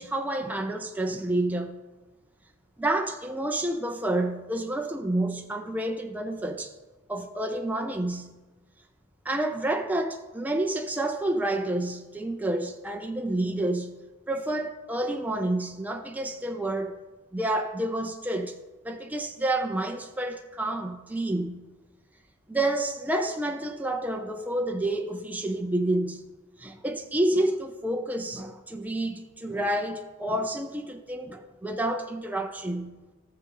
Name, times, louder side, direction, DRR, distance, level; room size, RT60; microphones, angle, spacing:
voice 1, 0.0-1.7 2.8-6.7 7.1-8.3 9.2-14.0 14.3-17.0 17.3-18.6 18.8-21.7 22.5-26.2 26.6-33.0, right 1 dB, 5° right, 0.5 m, -29 dB
15.0 x 6.6 x 3.9 m
head